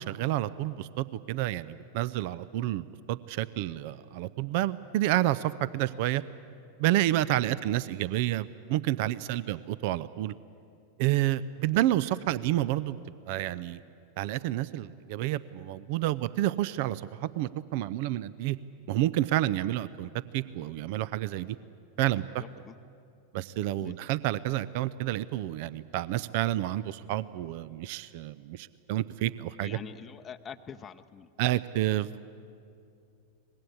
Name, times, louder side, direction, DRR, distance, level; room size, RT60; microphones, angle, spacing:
voice 1, 0.0-6.2 6.8-10.3 11.0-13.0 13.3-13.8 14.2-18.6 18.9-21.6 22.0-22.4 23.3-29.8 31.4-32.2, right 14 dB, 50° right, 18 dB, 0.6 m, -29 dB
voice 2, 22.4-22.8 23.8-24.0 29.6-31.3, left 7 dB, 20° left, 7 dB, 0.8 m, -44 dB
24.5 x 21.0 x 8.5 m, 2.5 s
figure-of-eight pair, 90°, 0 cm